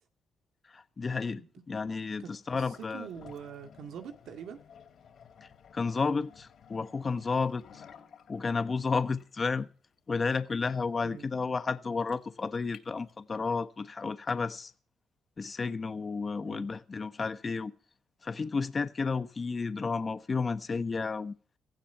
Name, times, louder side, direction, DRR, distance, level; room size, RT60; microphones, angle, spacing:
voice 1, 0.7-3.1 5.4-7.8 8.3-9.7 10.1-14.7 15.4-17.7 18.2-21.3, left 4 dB, 35° left, 1.1 m, -32 dB
sound 1, 2.5-13.5, left 7 dB, 60° left, 3.5 m, -55 dB
voice 2, 2.6-4.6 11.0-11.2 16.4-16.7, right 7 dB, 75° right, 2.0 m, -44 dB
17.5 x 15.0 x 4.6 m
cardioid pair, 90°, 0 cm